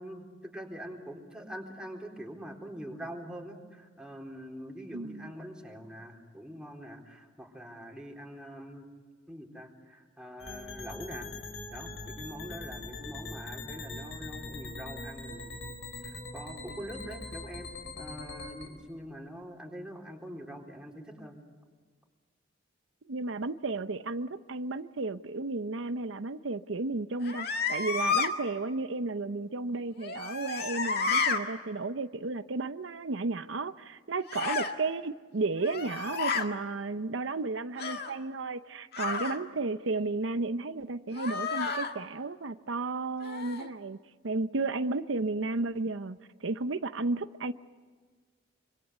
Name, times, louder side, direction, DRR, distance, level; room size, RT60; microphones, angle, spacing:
voice 1, 0.0-8.9 9.3-11.3 11.7-17.7 18.0-21.4, equal, 5° right, 0 dB, 4.0 m, -44 dB
voice 2, 4.9-5.3 23.1-44.0 44.2-47.5, right 3 dB, 90° right, 11 dB, 0.8 m, -33 dB
sound 1, 10.4-18.7, left 2 dB, 80° left, 4.9 m, -42 dB
sound 2, 27.2-28.3 30.0-31.4 34.3-34.7 35.6-36.5 37.8-38.2 38.9-39.4 41.1-41.9 43.2-43.7, left 5 dB, 55° left, 2.0 m, -31 dB
26.0 x 25.0 x 8.3 m, 1.5 s
head